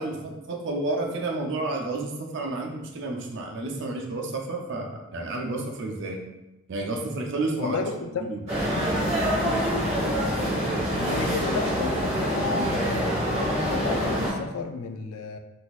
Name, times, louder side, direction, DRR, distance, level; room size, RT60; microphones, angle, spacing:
voice 1, 0.0-6.2 6.7-7.8 8.2-8.4, right 2 dB, 55° right, 1 dB, 0.5 m, -30 dB
voice 2, 7.6-8.3 10.9-15.4, left 4 dB, 85° left, 6 dB, 0.3 m, -32 dB
sound 1, 8.5-14.3, equal, 30° right, 1.3 m, -25 dB
3.9 x 2.6 x 2.4 m, 0.96 s
head